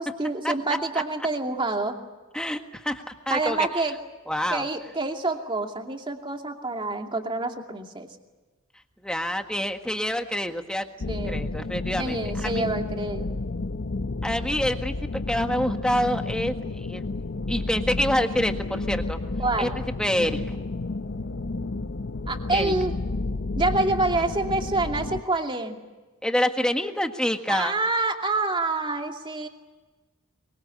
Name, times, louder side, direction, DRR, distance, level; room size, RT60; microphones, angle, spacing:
voice 1, 0.0-2.0 3.3-4.0 4.5-8.1 11.1-11.5 12.0-13.3 19.4-19.8 22.3-22.9 23.6-25.8 27.5-29.5, right 2 dB, 25° right, 3 dB, 2.5 m, -27 dB
voice 2, 2.3-3.7 4.3-4.6 9.0-10.9 11.3-12.6 14.2-17.0 17.5-19.2 19.6-19.7 20.0-20.6 22.5-22.7 26.2-27.7, equal, 5° left, 5 dB, 1.6 m, -27 dB
sound 1, 11.0-25.2, left 2 dB, 55° left, 0.8 m, -31 dB
24.5 x 23.5 x 8.5 m, 1.2 s
head